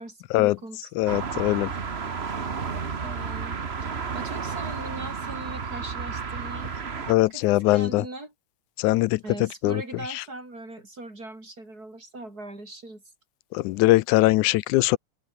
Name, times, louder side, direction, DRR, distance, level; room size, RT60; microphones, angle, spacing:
voice 1, 0.0-1.6 2.7-6.7 7.3-8.3 9.2-13.0, right 2 dB, 30° right, 7.0 m, -40 dB
voice 2, 1.0-1.7 7.1-8.0 8.8-9.2 9.6-9.8 13.5-15.0, left 19 dB, 90° left, 2.1 m, -21 dB
sound 1, 1.1-7.1, right 5 dB, 70° right, 0.6 m, -32 dB
omnidirectional pair, 3.5 m